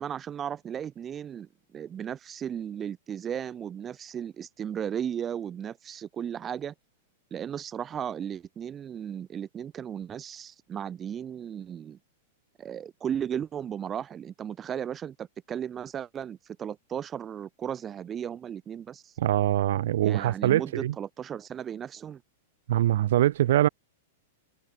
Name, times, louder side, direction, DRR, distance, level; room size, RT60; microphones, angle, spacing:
voice 1, 0.0-6.7 7.3-12.0 12.6-19.1 20.0-22.2, right 9 dB, 20° right, 3.1 m, -35 dB
voice 2, 19.2-20.9 22.7-23.7, right 13 dB, 65° right, 1.7 m, -23 dB
supercardioid pair, 150°, 0 cm